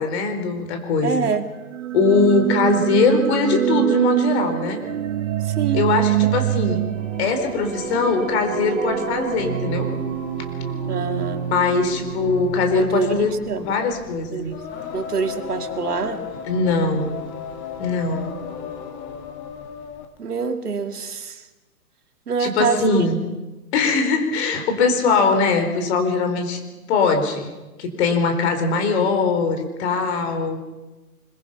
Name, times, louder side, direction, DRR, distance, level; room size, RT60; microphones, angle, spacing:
voice 1, 0.0-1.3 1.9-4.8 5.7-6.8 7.2-9.9 11.5-13.3 13.6-14.6 16.5-17.2 17.8-18.3 22.4-23.2 23.7-26.6 26.9-27.5 27.8-30.6, left 4 dB, 45° left, 6 dB, 4.3 m, -21 dB
voice 2, 1.0-1.5 5.4-5.9 10.9-11.5 12.7-13.7 14.3-14.6 14.9-16.3 20.2-21.4 22.3-23.3, right 5 dB, 80° right, 6 dB, 2.4 m, -26 dB
sound 1, 1.7-13.6, right 13 dB, 55° right, 1.4 m, -25 dB
Singing, 7.0-20.2, left 7 dB, 25° left, 2.5 m, -36 dB
25.0 x 22.0 x 5.8 m, 1.1 s
hypercardioid pair, 135°, 45 cm